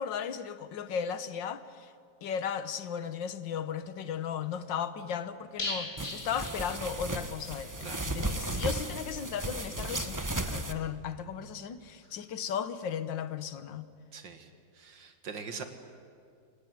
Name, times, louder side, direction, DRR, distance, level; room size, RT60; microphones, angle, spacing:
voice 1, 0.0-1.9 2.2-13.9, left 7 dB, 80° left, 1.8 m, -36 dB
sound 1, 5.6-7.4 7.6-7.7 8.1-8.2, left 2 dB, 30° left, 2.7 m, -38 dB
sound 2, 6.0-10.7, right 1 dB, 15° right, 0.9 m, -35 dB
voice 2, 14.1-14.5 14.7-15.6, right 5 dB, 75° right, 2.6 m, -42 dB
28.0 x 19.5 x 9.4 m
omnidirectional pair, 2.0 m